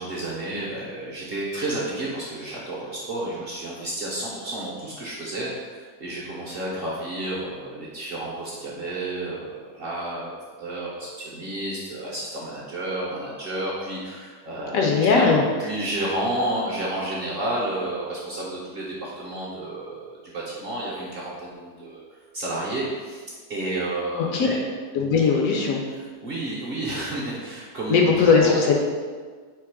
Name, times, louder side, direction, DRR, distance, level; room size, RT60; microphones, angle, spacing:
voice 1, 0.0-10.3 10.6-23.2 23.5-24.6 25.9-28.1 28.4-28.6, right 1 dB, 50° right, -5 dB, 0.8 m, -31 dB
voice 2, 14.7-15.4 24.2-24.5 24.9-25.8 27.9-28.8, left 5 dB, 70° left, 0 dB, 0.9 m, -19 dB
3.6 x 2.9 x 4.6 m, 1.5 s
omnidirectional pair, 1.6 m